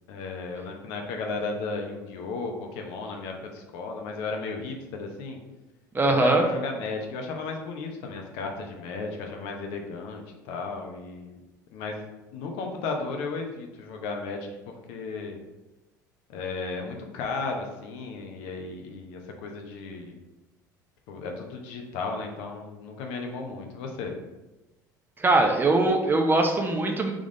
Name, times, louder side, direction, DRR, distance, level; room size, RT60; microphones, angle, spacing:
voice 1, 0.1-5.4 6.1-11.4 11.7-12.1 12.3-14.5 14.9-15.4 16.3-20.1 21.1-24.1, left 4 dB, 60° left, 2 dB, 0.7 m, -34 dB
voice 2, 5.9-6.4 25.2-27.1, right 2 dB, 20° right, 3 dB, 0.7 m, -21 dB
3.7 x 3.6 x 3.9 m, 1.1 s
figure-of-eight pair, 65°, 10 cm